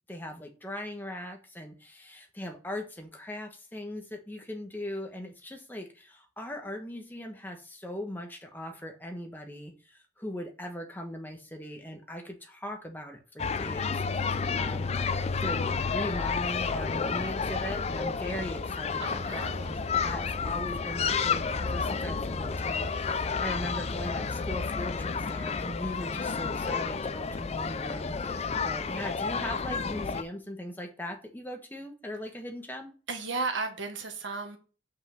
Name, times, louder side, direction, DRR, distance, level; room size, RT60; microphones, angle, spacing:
voice 1, 0.1-19.8 20.0-32.9, left 1 dB, 10° left, 1.2 m, -39 dB
sound 1, 13.4-30.2, left 5 dB, 35° left, 0.4 m, -31 dB
voice 2, 19.0-19.8 33.1-34.6, right 4 dB, 80° right, 1.6 m, -34 dB
5.8 x 5.4 x 5.8 m
head